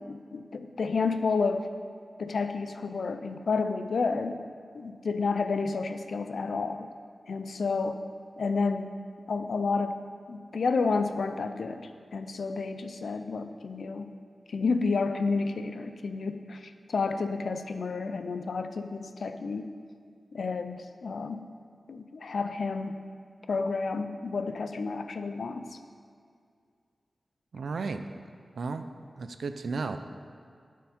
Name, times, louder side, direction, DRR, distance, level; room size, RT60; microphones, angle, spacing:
voice 1, 0.0-1.7 2.2-4.4 4.7-6.9 7.3-8.0 8.4-8.9 9.3-10.0 10.3-14.1 14.5-19.7 20.3-21.4 21.9-23.0 23.5-25.7, left 4 dB, 85° left, 9 dB, 0.5 m, -30 dB
voice 2, 27.5-28.0 28.6-28.9 29.2-30.0, right 4 dB, 85° right, 8 dB, 0.5 m, -33 dB
11.5 x 6.5 x 4.3 m, 2.2 s
cardioid pair, 50°, 0 cm